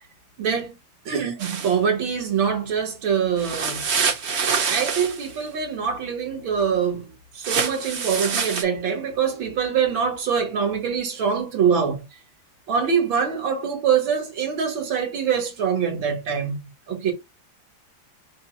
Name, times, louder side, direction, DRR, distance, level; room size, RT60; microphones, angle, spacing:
voice 1, 0.4-0.7 1.1-3.8 4.7-12.0 12.7-17.1, right 7 dB, 80° right, 2.2 m, -24 dB
sound 1, 1.4-1.7 3.4-5.3 7.4-8.6, right 6 dB, 55° right, 0.8 m, -25 dB
5.7 x 2.0 x 4.4 m
omnidirectional pair, 2.1 m